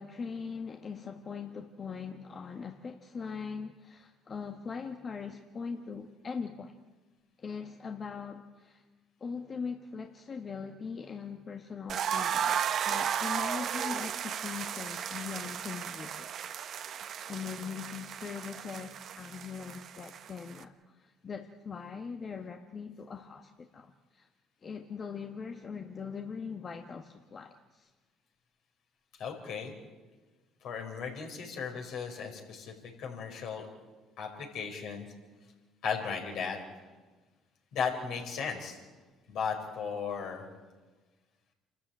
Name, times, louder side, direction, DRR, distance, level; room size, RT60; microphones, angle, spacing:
voice 1, 0.0-6.8 7.4-8.8 9.2-16.3 16.9-24.3 24.6-27.9, left 5 dB, 40° left, 5 dB, 1.5 m, -41 dB
sound 1, 11.9-20.6, right 8 dB, 55° right, 1.2 m, -34 dB
voice 2, 29.2-29.7 30.6-32.7 33.0-33.6 34.2-35.0 35.8-36.6 37.7-38.8 39.3-40.4, left 6 dB, 65° left, 2 dB, 5.4 m, -36 dB
28.0 x 13.5 x 8.9 m, 1.3 s
hypercardioid pair, 70°, 0 cm